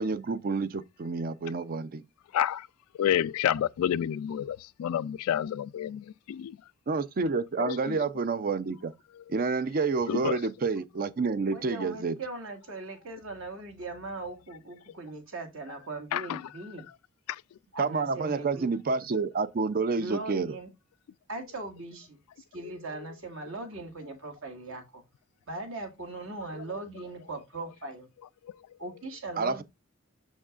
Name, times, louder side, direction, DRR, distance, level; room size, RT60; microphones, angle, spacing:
voice 1, 0.0-2.0 6.9-8.9 9.3-12.1 17.8-20.5 29.4-29.6, right 4 dB, 45° right, 0.5 m, -29 dB
voice 2, 2.3-2.7 3.0-6.6 7.6-8.0 9.2-9.3 10.1-10.4 16.1-16.4 17.3-17.4 22.6-22.7 26.6-26.9, left 10 dB, 85° left, 0.3 m, -29 dB
voice 3, 11.3-16.9 17.7-18.7 20.0-20.7 21.3-22.2 22.5-25.0 25.5-28.1 28.8-29.6, right 2 dB, 65° right, 2.0 m, -39 dB
6.4 x 6.2 x 2.4 m
head